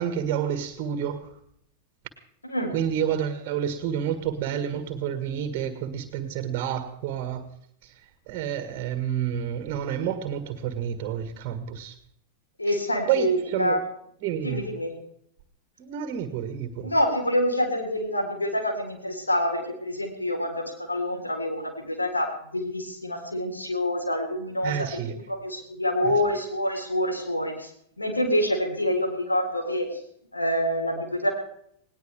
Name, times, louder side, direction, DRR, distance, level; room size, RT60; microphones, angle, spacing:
voice 1, 0.0-1.3 2.7-7.5 7.8-7.9 8.3-12.0 13.1-13.8 14.2-14.6 15.8-16.9 24.6-25.2 26.0-26.2, right 9 dB, 40° right, 9 dB, 1.7 m, -29 dB
voice 2, 12.6-13.8 14.4-14.9 16.8-27.7 28.0-29.9 30.3-31.3, left 1 dB, 80° left, 2 dB, 4.0 m, -27 dB
19.5 x 18.5 x 3.5 m, 0.70 s
figure-of-eight pair, 90°, 0 cm